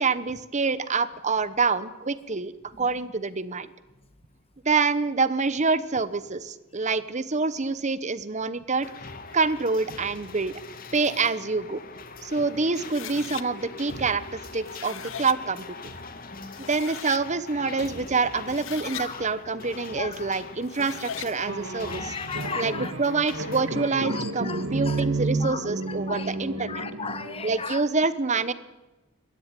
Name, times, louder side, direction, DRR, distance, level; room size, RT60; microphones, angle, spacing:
voice 1, 0.0-2.5 2.8-3.7 4.6-8.9 9.3-10.5 10.9-11.8 12.2-14.2 14.5-15.9 16.6-22.1 22.6-22.7 23.0-26.8 27.4-28.5, right 4 dB, 35° right, 15 dB, 1.0 m, -26 dB
sound 1, 8.8-23.6, left 3 dB, 45° left, 2.1 m, -42 dB
sound 2, 12.8-13.5 14.5-15.4 16.2-16.3 16.6-17.3 18.3-19.1 20.6-21.3, left 10 dB, 70° left, 0.9 m, -39 dB
voice 2, 16.0-16.7 18.9-19.3 20.0-20.3 21.8-22.9 24.0-25.0 25.4-26.3 26.7-27.8, left 5 dB, 30° left, 10 dB, 1.6 m, -36 dB
sound 3, 21.5-27.6, right 2 dB, 70° right, 2.2 m, -31 dB
22.0 x 16.5 x 9.2 m, 1.1 s
head